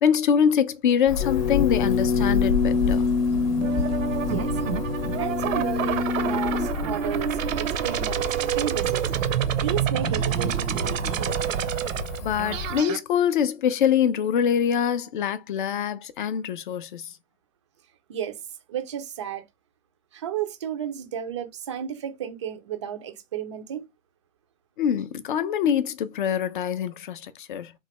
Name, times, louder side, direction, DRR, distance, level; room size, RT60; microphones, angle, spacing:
voice 1, 0.0-3.1 12.2-17.1 24.8-27.7, left 8 dB, 40° left, 0.4 m, -24 dB
Cricket / Motor vehicle (road), 1.1-12.8, left 4 dB, 25° left, 0.8 m, -32 dB
sound 1, 1.2-6.7, left 5 dB, 80° left, 0.6 m, -26 dB
sound 2, 3.6-13.0, right 9 dB, 70° right, 0.6 m, -28 dB
voice 2, 5.1-9.1 9.6-11.4 18.1-18.4 18.7-19.4 20.1-23.9, right 9 dB, 25° right, 0.3 m, -33 dB
3.1 x 2.2 x 2.9 m
hypercardioid pair, 125°, 40 cm